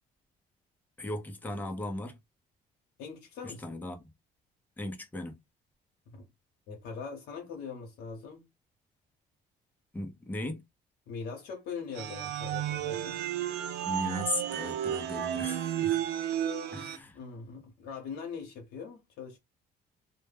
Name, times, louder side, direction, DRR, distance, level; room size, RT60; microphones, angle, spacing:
voice 1, 1.0-2.2 3.4-4.1 4.8-5.3 9.9-10.6 13.8-16.0 16.7-17.2, left 2 dB, 10° left, 0.5 m, -37 dB
voice 2, 3.0-3.6 6.1-6.2 6.7-8.4 11.1-13.2 17.1-19.4, left 5 dB, 85° left, 0.7 m, -41 dB
sound 1, 11.9-17.0, right 11 dB, 80° right, 0.4 m, -32 dB
2.1 x 2.1 x 3.2 m
cardioid pair, 110°, 17 cm